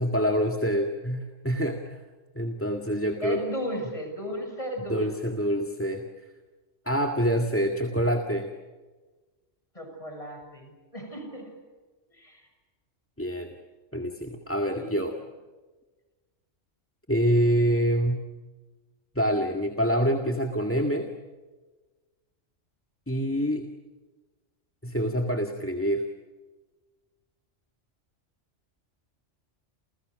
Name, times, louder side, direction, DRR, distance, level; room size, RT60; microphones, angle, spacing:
voice 1, 0.0-2.0 2.4-3.4 4.9-6.0 6.9-8.5 13.2-13.6 13.9-15.2 17.1-18.2 19.2-21.1 23.1-23.6 24.8-26.1, equal, 10° left, 4 dB, 1.9 m, -26 dB
voice 2, 3.2-5.1 9.8-11.5 12.2-12.4 14.7-15.0, equal, 25° left, 4 dB, 7.2 m, -35 dB
30.0 x 29.5 x 6.5 m, 1.3 s
omnidirectional pair, 1.2 m